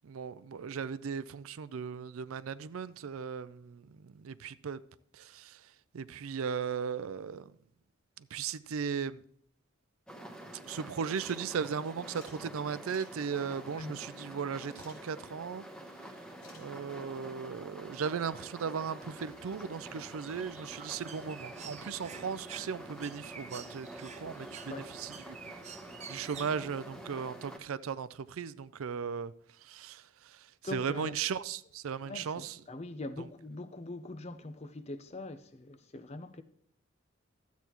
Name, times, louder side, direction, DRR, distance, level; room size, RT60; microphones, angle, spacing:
voice 1, 0.0-4.8 5.1-5.6 5.9-7.5 8.2-9.2 10.6-15.6 16.6-25.4 26.1-29.3 29.6-32.6 33.2-33.3, right 6 dB, 80° right, 0.4 m, -37 dB
sound 1, 10.1-27.6, right 1 dB, 5° left, 1.1 m, -47 dB
sound 2, 11.1-11.4 11.7-11.8 12.1-12.4 12.8-13.1 14.7-15.0 16.4-16.6, left 2 dB, 85° left, 3.8 m, -55 dB
Bird, 19.0-27.1, right 6 dB, 30° right, 0.5 m, -50 dB
voice 2, 30.6-31.1 32.0-36.4, left 2 dB, 30° left, 0.5 m, -42 dB
12.5 x 8.2 x 3.0 m
head